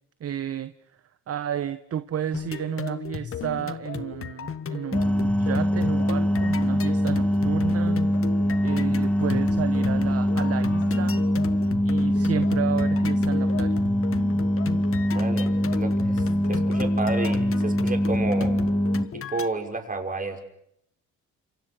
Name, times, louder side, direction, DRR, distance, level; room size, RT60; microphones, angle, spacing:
voice 1, 0.2-0.7 1.3-8.2 8.6-11.3 11.8-13.8, right 9 dB, 50° right, 12 dB, 1.2 m, -32 dB
sound 1, 2.3-19.5, left 8 dB, 45° left, 1.6 m, -35 dB
sound 2, 4.9-19.1, equal, 5° left, 1.2 m, -23 dB
voice 2, 15.1-18.5 19.1-20.4, right 3 dB, 25° right, 4 dB, 6.0 m, -31 dB
29.5 x 27.5 x 6.2 m, 0.74 s
cardioid pair, 90°, 30 cm